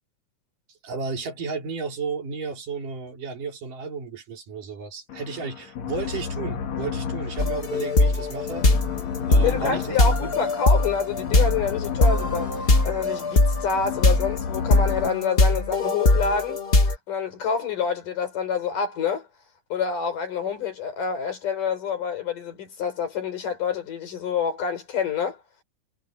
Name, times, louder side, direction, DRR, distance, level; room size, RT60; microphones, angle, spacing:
voice 1, 0.8-8.7 9.3-10.4, right 4 dB, 80° right, 5.6 m, -33 dB
sound 1, 5.1-15.1, left 7 dB, 60° left, 3.1 m, -33 dB
sound 2, 7.4-16.9, left 2 dB, 25° left, 1.5 m, -21 dB
voice 2, 9.4-16.6 17.1-19.3 19.7-25.4, left 6 dB, 80° left, 6.2 m, -27 dB
omnidirectional pair, 3.7 m